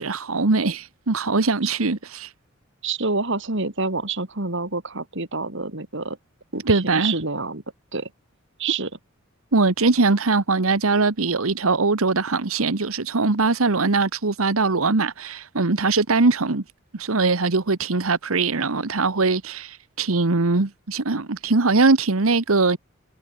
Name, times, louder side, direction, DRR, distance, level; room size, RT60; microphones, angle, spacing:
voice 1, 0.0-2.3 6.6-7.1 9.5-16.6 16.9-22.8, right 3 dB, 90° right, 1.2 m, -21 dB
voice 2, 1.6-2.0 2.8-6.2 6.5-7.6 7.9-8.1 8.6-8.9, right 3 dB, 60° right, 3.8 m, -28 dB
head